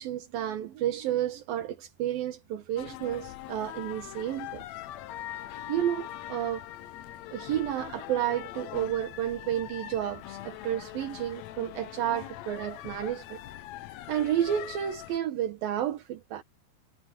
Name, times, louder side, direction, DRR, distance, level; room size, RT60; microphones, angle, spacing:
voice 1, 0.0-4.6 5.5-6.7 7.3-13.4 14.1-16.4, right 11 dB, 80° right, 3.2 m, -31 dB
sound 1, 2.8-15.2, left 13 dB, 80° left, 1.6 m, -42 dB
omnidirectional pair, 4.1 m